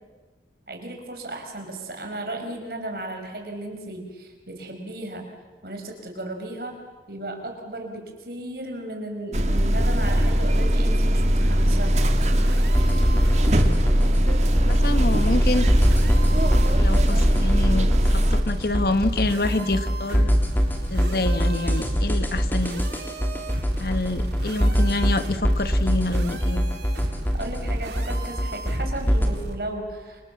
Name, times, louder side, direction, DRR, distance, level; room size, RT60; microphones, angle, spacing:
voice 1, 0.7-5.3 5.6-6.8 7.1-12.1 27.4-30.2, right 1 dB, 60° right, 3 dB, 5.6 m, -35 dB
sound 1, 9.3-18.4, equal, 40° right, 2.0 m, -20 dB
sound 2, 9.8-10.7 11.5-14.1 14.9-17.6 18.4-29.6, right 1 dB, 75° right, 3.1 m, -35 dB
sound 3, 12.7-29.3, equal, 10° left, 3.1 m, -24 dB
voice 2, 14.6-15.7 16.8-20.3 20.9-22.8 23.8-26.6, left 2 dB, 55° left, 11 dB, 1.4 m, -27 dB
30.0 x 26.5 x 7.3 m, 1.3 s
head